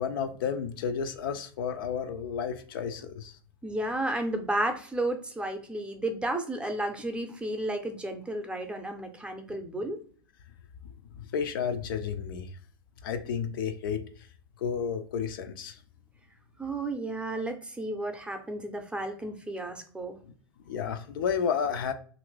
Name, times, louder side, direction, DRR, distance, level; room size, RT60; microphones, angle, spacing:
voice 1, 0.0-3.3 11.2-12.5 13.0-14.0 14.6-15.8 20.7-21.9, left 7 dB, 70° left, 0.4 m, -31 dB
voice 2, 3.6-10.0 16.6-20.2, right 1 dB, 10° right, 0.6 m, -32 dB
2.8 x 2.5 x 3.1 m
hypercardioid pair, 100°, 12 cm